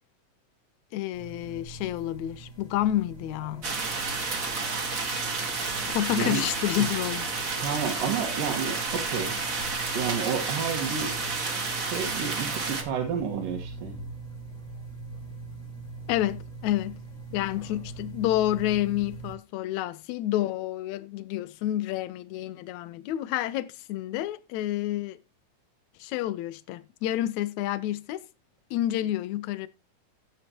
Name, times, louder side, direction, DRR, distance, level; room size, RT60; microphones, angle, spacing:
voice 1, 0.9-3.7 5.9-7.3 16.1-17.0 17.3-25.2 26.0-28.3 28.7-29.7, left 13 dB, 75° left, 1.9 m, -29 dB
sound 1, 1.1-19.3, right 3 dB, 30° left, 1.9 m, -42 dB
sound 2, 3.6-12.8, right 4 dB, 35° right, 1.6 m, -31 dB
voice 2, 7.6-9.4 9.9-11.1 11.8-14.0, right 7 dB, 85° right, 3.3 m, -30 dB
14.5 x 8.7 x 3.0 m
omnidirectional pair, 3.8 m